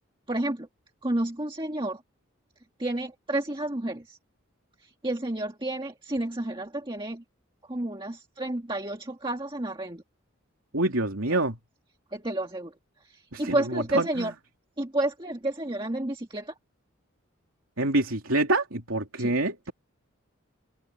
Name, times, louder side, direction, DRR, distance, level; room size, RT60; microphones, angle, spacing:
voice 1, 0.3-0.7 1.0-2.0 2.8-4.2 4.8-7.2 7.7-10.0 11.3-11.4 12.1-12.7 13.0-14.3 14.8-16.5 19.2-19.3, right 1 dB, 25° right, 1.8 m, -30 dB
voice 2, 10.7-11.6 13.3-14.3 17.8-19.7, right 2 dB, 75° right, 3.2 m, -26 dB
head